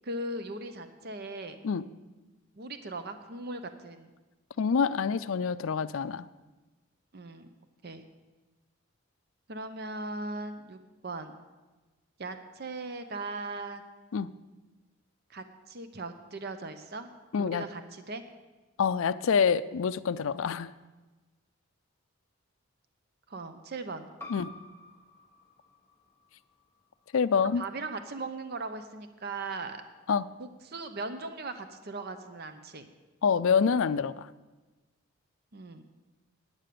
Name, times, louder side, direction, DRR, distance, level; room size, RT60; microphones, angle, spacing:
voice 1, 0.0-1.6 2.6-4.1 7.1-7.5 7.8-8.0 9.5-11.3 12.2-13.8 15.3-17.1 17.4-18.2 23.3-24.1 27.5-29.8 30.4-32.9 35.5-35.8, right 2 dB, 45° right, 9 dB, 0.7 m, -39 dB
voice 2, 4.6-6.2 14.1-14.3 17.3-17.6 18.8-20.7 24.3-24.5 27.1-27.6 30.1-30.3 33.2-34.3, left 6 dB, 65° left, 15 dB, 0.4 m, -26 dB
sound 1, 24.2-29.4, left 2 dB, 10° left, 0.9 m, -52 dB
9.7 x 9.1 x 6.7 m, 1.2 s
head